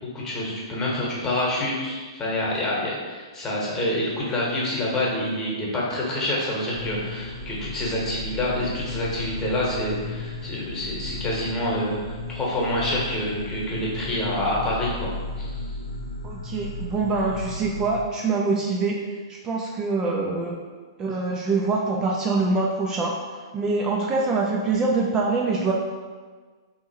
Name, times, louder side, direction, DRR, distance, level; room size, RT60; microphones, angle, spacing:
voice 1, 0.0-15.1 15.4-15.6, left 1 dB, 20° left, -5 dB, 1.0 m, -27 dB
sound 1, 6.7-18.0, left 2 dB, 90° left, 0.5 m, -34 dB
voice 2, 16.2-20.5 21.0-23.1 23.5-25.7, right 3 dB, 25° right, -2 dB, 0.4 m, -24 dB
3.5 x 2.8 x 2.7 m, 1.5 s
hypercardioid pair, 120°, 2 cm